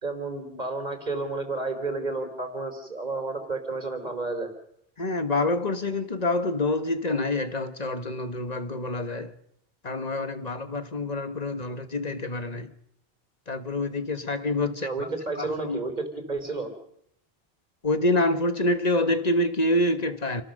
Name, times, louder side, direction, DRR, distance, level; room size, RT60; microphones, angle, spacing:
voice 1, 0.0-4.5 14.8-16.7, right 3 dB, 45° right, 3.7 m, -31 dB
voice 2, 5.0-9.3 9.8-12.7 13.5-15.1 15.4-15.8 17.8-20.4, left 2 dB, 40° left, 1.5 m, -27 dB
28.0 x 19.0 x 6.6 m
omnidirectional pair, 1.0 m